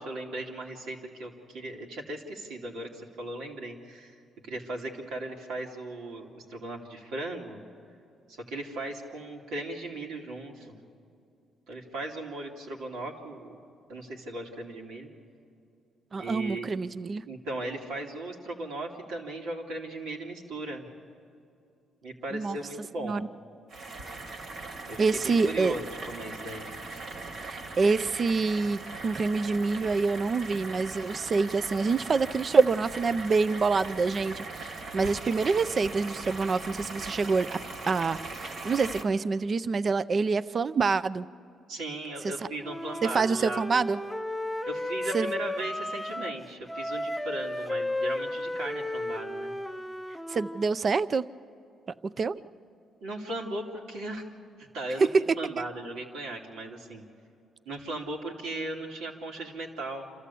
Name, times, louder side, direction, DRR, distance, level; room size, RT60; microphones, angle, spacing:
voice 1, 0.0-7.6 8.3-10.8 11.7-13.6 13.9-15.1 16.2-16.7 17.3-20.9 22.0-23.2 24.9-27.0 41.7-43.6 44.7-49.5 53.0-54.2 54.6-55.1 55.4-57.0 57.6-60.1, right 2 dB, 90° right, -1 dB, 2.7 m, -37 dB
voice 2, 16.1-17.2 22.3-22.6 23.0-23.2 25.0-25.7 27.4-37.6 37.9-41.3 42.2-42.3 43.0-44.0 45.1-45.3 50.3-51.3 52.0-52.4 55.0-55.2 55.6-55.7, right 4 dB, 40° right, 16 dB, 0.5 m, -26 dB
sound 1, 23.7-39.0, right 3 dB, 70° right, 2.2 m, -40 dB
Wind instrument woodwind instrument, 42.6-46.4 46.7-50.7, left 1 dB, 5° left, 0.6 m, -34 dB
27.0 x 14.0 x 8.4 m, 2.5 s
cardioid pair, 90°, 0 cm